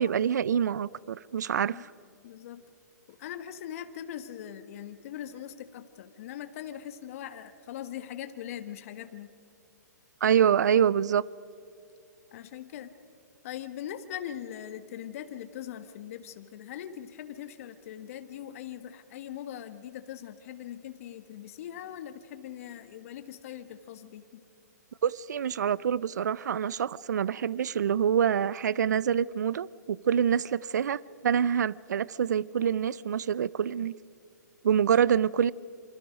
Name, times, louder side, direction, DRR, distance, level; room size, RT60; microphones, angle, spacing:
voice 1, 0.0-1.9 10.2-11.2 25.0-33.9 34.6-35.5, right 8 dB, 70° right, 0.5 m, -26 dB
voice 2, 2.2-2.6 3.2-9.3 12.3-12.9 13.4-24.4, left 10 dB, 50° left, 1.3 m, -41 dB
27.5 x 25.5 x 5.1 m
hypercardioid pair, 125°, 10 cm